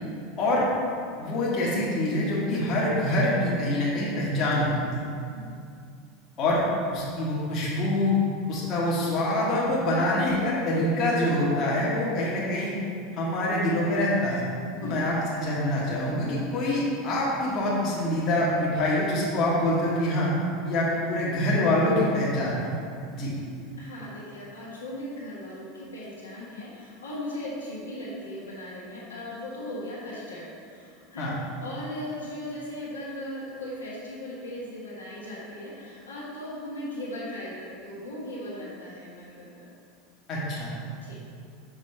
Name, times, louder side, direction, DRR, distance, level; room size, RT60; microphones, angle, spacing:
voice 1, 1.2-5.0 6.4-6.6 6.9-8.2 8.5-12.7 13.2-14.4 14.8-20.3 20.6-22.7 23.1-23.3 31.2-31.3 40.3-40.7, left 1 dB, 40° left, -6 dB, 1.3 m, -25 dB
voice 2, 23.8-39.6 41.0-41.2, left 1 dB, 80° left, -7 dB, 1.4 m, -38 dB
6.2 x 5.2 x 3.3 m, 2.4 s
figure-of-eight pair, 80°, 0 cm